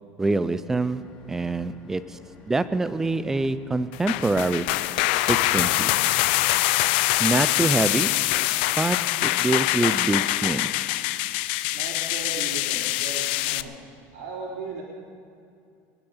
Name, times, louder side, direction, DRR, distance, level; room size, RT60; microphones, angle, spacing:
voice 1, 0.2-1.0 1.3-2.2 2.5-4.7 5.3-5.9 7.2-8.2 8.8-10.7, right 2 dB, 5° right, 14 dB, 0.4 m, -25 dB
sound 1, 0.6-6.1, left 1 dB, 15° left, 2.9 m, -51 dB
sound 2, 3.9-13.6, left 17 dB, 80° left, 0.5 m, -24 dB
voice 2, 11.7-13.8 14.1-14.8, right 4 dB, 75° right, -3 dB, 3.4 m, -37 dB
23.5 x 9.8 x 5.6 m, 2.5 s
cardioid pair, 180°, 6 cm